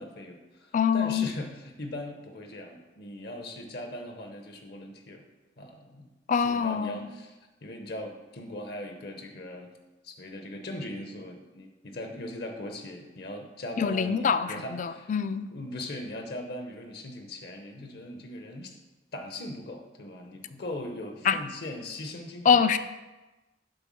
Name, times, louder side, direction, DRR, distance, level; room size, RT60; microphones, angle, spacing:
voice 1, 0.0-5.3 5.6-6.1 6.4-9.7 10.0-15.1 15.5-18.8 19.1-22.6, left 1 dB, 65° left, 4 dB, 0.9 m, -39 dB
voice 2, 0.7-1.3 6.3-7.1 13.8-15.5 21.2-21.4 22.4-22.8, left 6 dB, 45° left, 12 dB, 0.4 m, -24 dB
7.7 x 3.7 x 6.2 m, 1.1 s
head